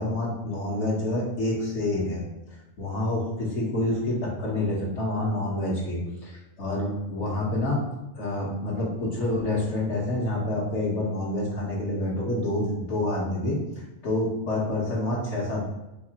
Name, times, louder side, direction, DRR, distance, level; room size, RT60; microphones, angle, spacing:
voice 1, 0.0-7.9 8.1-15.6, left 1 dB, 75° left, -5 dB, 1.2 m, -28 dB
4.0 x 2.9 x 2.7 m, 0.93 s
omnidirectional pair, 1.2 m